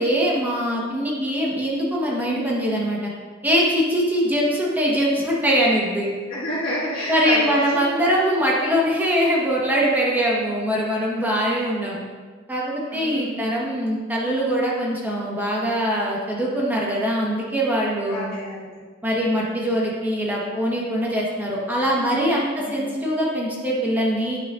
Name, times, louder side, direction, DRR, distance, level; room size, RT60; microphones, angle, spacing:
voice 1, 0.0-3.1 3.4-6.1 7.1-12.0 12.5-18.3 19.0-24.4, equal, 10° right, -5 dB, 1.1 m, -22 dB
voice 2, 6.3-7.8 11.3-11.7 12.9-13.5 18.1-18.8 22.6-22.9, equal, 50° left, -11 dB, 1.7 m, -30 dB
9.7 x 6.2 x 2.5 m, 1.4 s
head